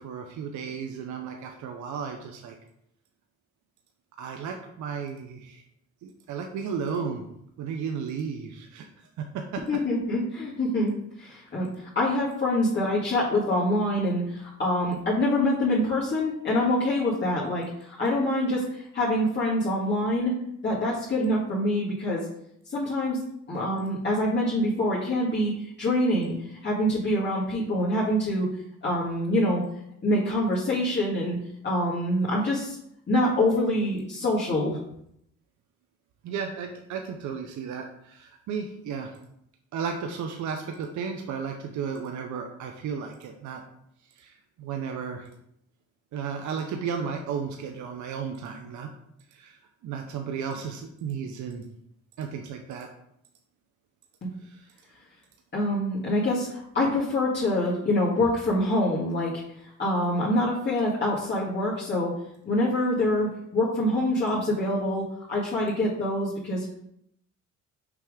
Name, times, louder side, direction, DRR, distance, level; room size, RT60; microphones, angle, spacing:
voice 1, 0.0-2.5 4.2-5.6 6.0-7.3 7.6-8.9 9.2-9.6 36.2-39.1 39.7-43.6 44.2-45.3 46.1-48.9 49.3-49.6 49.8-51.6 52.2-52.9 54.4-54.6, right 6 dB, 75° right, 3 dB, 0.7 m, -34 dB
voice 2, 9.7-20.3 20.6-22.3 22.7-23.2 23.5-28.5 28.8-29.6 30.0-31.4 31.6-32.8 33.1-34.8 55.5-59.4 59.8-62.2 62.5-66.7, left 1 dB, 35° left, -8 dB, 2.0 m, -25 dB
6.0 x 3.4 x 4.9 m, 0.75 s
cardioid pair, 90°, 30 cm